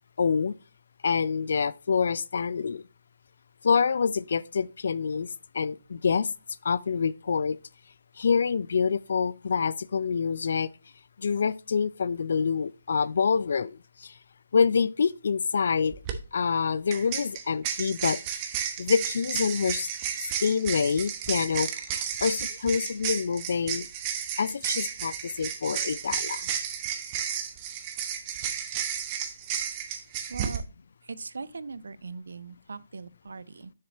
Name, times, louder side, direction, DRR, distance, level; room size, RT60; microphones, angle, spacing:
voice 1, 0.2-0.5 1.0-2.8 3.6-5.3 5.5-6.3 6.6-7.6 8.2-10.7 11.2-14.1 14.5-16.0 16.3-18.2 18.8-19.9 20.4-21.7 22.0-23.9 24.4-26.5, left 5 dB, 55° left, 0.4 m, -26 dB
sound 1, 15.9-16.1 16.9-30.6, right 8 dB, 25° right, 0.9 m, -32 dB
voice 2, 30.3-30.6 31.1-33.7, right 4 dB, 65° right, 0.5 m, -40 dB
6.9 x 6.6 x 2.9 m
figure-of-eight pair, 145°, 0 cm